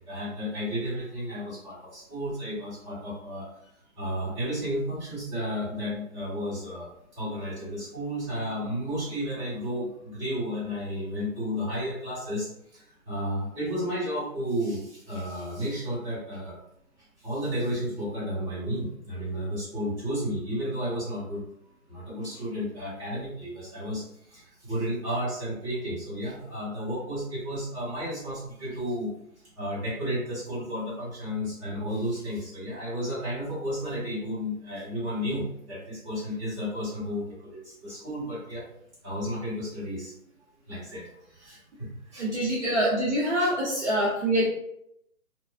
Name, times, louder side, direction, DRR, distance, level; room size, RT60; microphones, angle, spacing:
voice 1, 0.1-3.5 4.0-6.9 7.2-12.5 13.1-16.6 17.2-21.4 21.9-24.0 24.3-29.1 29.6-38.6 39.0-40.1 40.7-41.0 41.5-42.2 43.4-43.5 44.0-44.1, equal, 20° right, -10 dB, 1.3 m, -32 dB
voice 2, 42.2-44.4, right 1 dB, 50° right, -6 dB, 0.9 m, -25 dB
3.1 x 2.1 x 2.6 m, 0.77 s
hypercardioid pair, 150°, 44 cm